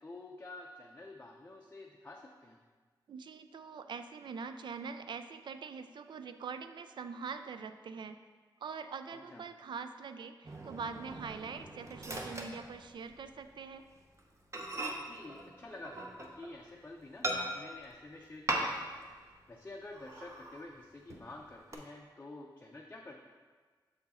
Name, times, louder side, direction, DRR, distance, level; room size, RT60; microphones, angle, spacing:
voice 1, 0.0-2.6 9.1-9.4 15.0-23.2, left 2 dB, 25° left, -1 dB, 0.5 m, -49 dB
voice 2, 3.1-8.2 8.6-13.8, right 5 dB, 70° right, 9 dB, 0.4 m, -43 dB
Microwave oven, 10.4-13.3 13.7-13.9 14.2-14.3 14.5-16.6 17.2-17.8 18.5-19.1 19.3-19.4 19.9-20.7 21.1-21.7, right 1 dB, 35° right, 0.7 m, -39 dB
6.4 x 4.6 x 4.2 m, 1.5 s
wide cardioid pair, 120°, 8 cm